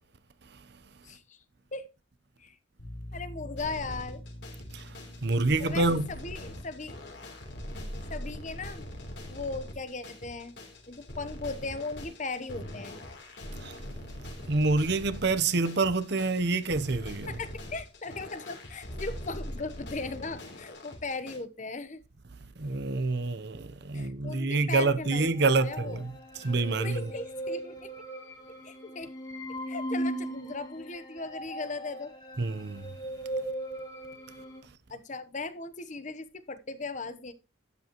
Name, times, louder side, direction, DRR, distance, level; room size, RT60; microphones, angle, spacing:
voice 1, 1.0-1.4 1.7-1.9 2.4-2.6 3.1-4.2 5.6-7.0 8.1-8.9 9.3-10.5 10.9-13.0 17.3-22.0 23.9-26.0 26.8-27.9 28.6-29.1 29.7-32.1 34.9-37.3, left 3 dB, 35° left, 0.9 m, -38 dB
sound 1, 2.8-14.1, left 1 dB, 75° left, 4.1 m, -49 dB
sound 2, 3.6-21.4, left 1 dB, 55° left, 3.5 m, -42 dB
voice 2, 4.7-6.1 13.5-13.8 14.5-17.4 22.6-26.1 26.4-27.1 32.4-32.9 34.6-34.7, right 3 dB, 55° right, 0.8 m, -27 dB
sound 3, 25.3-34.6, right 1 dB, 20° left, 2.5 m, -38 dB
12.0 x 10.5 x 3.0 m
head